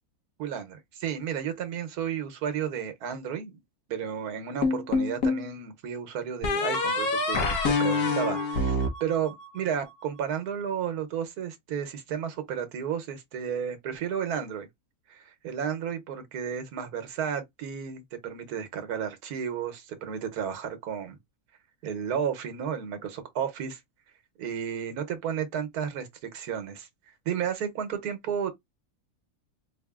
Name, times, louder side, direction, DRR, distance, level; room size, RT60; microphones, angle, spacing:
voice 1, 0.4-3.6 3.9-14.7 15.1-21.2 21.8-23.8 24.4-26.9 27.3-28.5, right 8 dB, 85° right, 1.3 m, -32 dB
sound 1, 4.6-5.5 6.4-9.8, left 3 dB, 85° left, 1.4 m, -26 dB
4.3 x 2.7 x 2.3 m
omnidirectional pair, 1.6 m